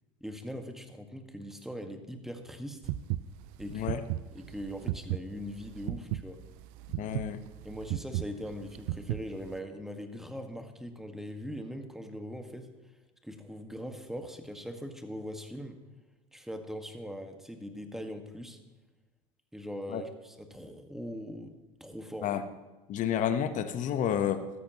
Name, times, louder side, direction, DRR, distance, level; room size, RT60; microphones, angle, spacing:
voice 1, 0.2-2.8 3.6-3.9 4.4-6.4 7.6-12.7 13.2-15.8 16.3-18.6 19.5-21.5 21.8-22.3, equal, ahead, 5 dB, 1.8 m, -41 dB
sound 1, 2.8-9.6, right 15 dB, 65° right, 0.5 m, -35 dB
voice 2, 3.7-4.0 7.0-7.4 19.9-20.0 22.2-22.4 22.9-24.5, left 9 dB, 50° left, 10 dB, 1.2 m, -30 dB
16.0 x 13.0 x 3.1 m, 1.2 s
hypercardioid pair, 70°, 16 cm